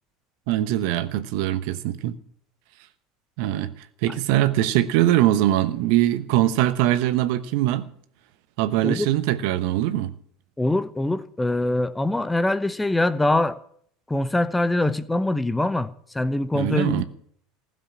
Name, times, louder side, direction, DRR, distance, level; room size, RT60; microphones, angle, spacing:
voice 1, 0.5-2.1 3.4-3.7 4.0-7.9 8.6-10.1 16.5-17.0, right 13 dB, 60° right, 1.0 m, -22 dB
voice 2, 10.6-13.6 14.1-17.0, left 2 dB, 10° left, 0.8 m, -23 dB
16.0 x 7.4 x 10.0 m
figure-of-eight pair, 75°, 0 cm